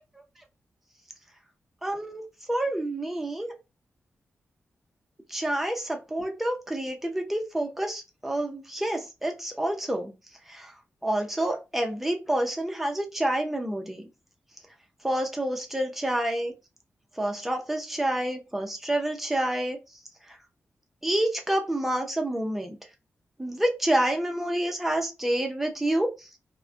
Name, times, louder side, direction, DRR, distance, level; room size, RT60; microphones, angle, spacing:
voice 1, 1.8-2.2 2.5-3.5 5.3-10.1 10.5-10.7 11.0-14.0 15.0-16.5 17.2-19.8 21.0-22.8 23.4-26.1, right 1 dB, 5° right, 2 dB, 0.5 m, -28 dB
2.4 x 2.1 x 2.5 m, 0.26 s
wide cardioid pair, 170°, 4 cm